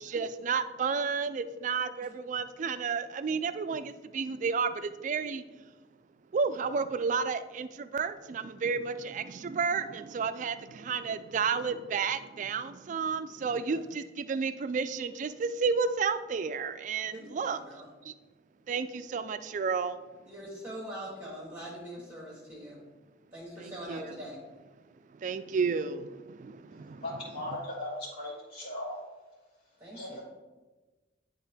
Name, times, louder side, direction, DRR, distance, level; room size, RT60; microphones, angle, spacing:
voice 1, 0.0-5.4 6.3-17.6 18.1-18.2 18.7-20.0 23.6-24.1 25.2-27.1, right 5 dB, 45° right, 12 dB, 0.3 m, -32 dB
voice 2, 17.1-17.9 20.3-22.9 23.3-24.4 29.8-30.2, equal, 15° right, -6 dB, 1.2 m, -43 dB
voice 3, 27.0-29.0 29.9-30.2, left 1 dB, 60° left, -11 dB, 2.1 m, -38 dB
9.9 x 3.6 x 3.5 m, 1.2 s
head